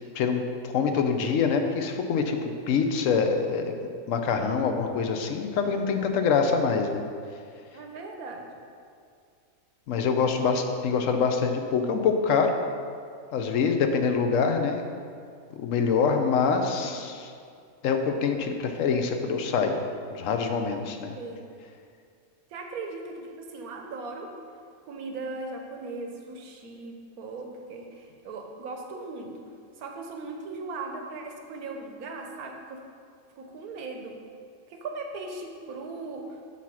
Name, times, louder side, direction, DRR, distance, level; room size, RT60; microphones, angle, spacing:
voice 1, 0.1-2.4 2.7-3.8 4.1-7.0 9.9-12.6 13.3-14.8 15.6-17.3 17.8-19.8 20.1-21.1, left 5 dB, 70° left, 5 dB, 1.0 m, -25 dB
voice 2, 7.7-8.5 16.8-16.9 21.2-21.5 22.5-24.3 24.8-29.3 29.8-32.8 33.4-34.2 34.7-36.4, right 3 dB, 90° right, 2 dB, 1.3 m, -38 dB
8.2 x 4.2 x 6.2 m, 2.3 s
omnidirectional pair, 1.5 m